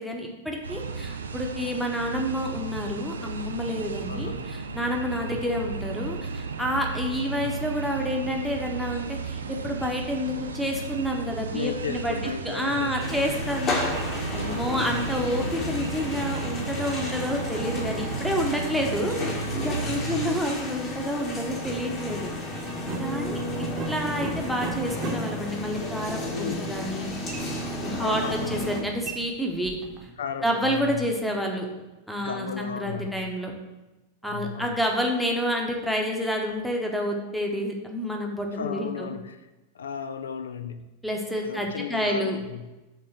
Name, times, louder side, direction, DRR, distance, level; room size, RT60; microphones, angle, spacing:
voice 1, 0.0-22.3 23.0-23.4 23.9-27.1 27.8-29.8 30.4-31.7 32.1-33.5 34.2-39.1 41.0-42.4, equal, ahead, 1 dB, 0.9 m, -29 dB
sound 1, 0.6-20.4, right 4 dB, 70° right, 0.4 m, -34 dB
voice 2, 4.0-4.5 5.1-5.4 7.1-7.5 11.5-13.2 14.6-15.3 19.7-20.4 26.3-26.8 27.7-28.7 30.2-31.1 32.2-33.3 34.2-34.8 38.5-39.4 39.7-40.9 41.4-42.7, left 7 dB, 65° left, 9 dB, 0.4 m, -35 dB
sound 2, 13.0-28.8, left 1 dB, 30° left, 1.3 m, -32 dB
sound 3, 21.6-21.8 22.6-30.1, right 3 dB, 30° right, 1.0 m, -38 dB
5.5 x 3.7 x 5.6 m, 1.1 s
figure-of-eight pair, 90°, 0 cm